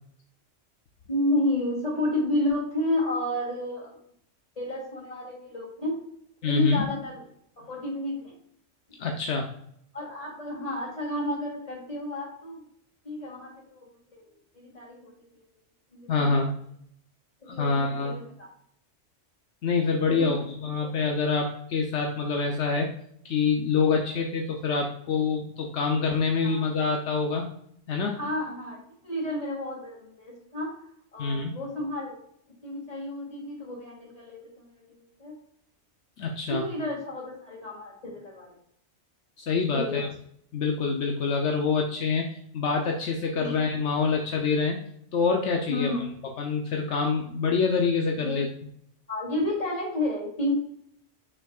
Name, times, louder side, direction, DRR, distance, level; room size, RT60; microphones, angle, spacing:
voice 1, 1.1-3.9 4.6-6.0 6.4-7.2 7.6-8.3 9.9-12.6 13.0-13.9 14.1-15.1 15.9-16.1 17.4-18.5 20.0-20.4 26.4-26.6 28.1-30.7 31.1-32.1 32.6-34.8 35.2-35.4 36.5-38.5 39.7-40.1 43.4-43.5 45.7-46.0 48.2-48.4 49.1-50.5, left 1 dB, 30° left, -4 dB, 2.9 m, -31 dB
voice 2, 6.4-6.8 9.0-9.5 16.1-16.5 17.5-18.2 19.6-22.9 23.2-27.5 27.9-28.2 31.2-31.5 36.2-36.6 39.4-40.1 40.5-44.8 45.1-45.9 46.4-48.5, left 4 dB, 75° left, 2 dB, 1.1 m, -26 dB
7.0 x 5.8 x 2.3 m, 0.69 s
omnidirectional pair, 1.2 m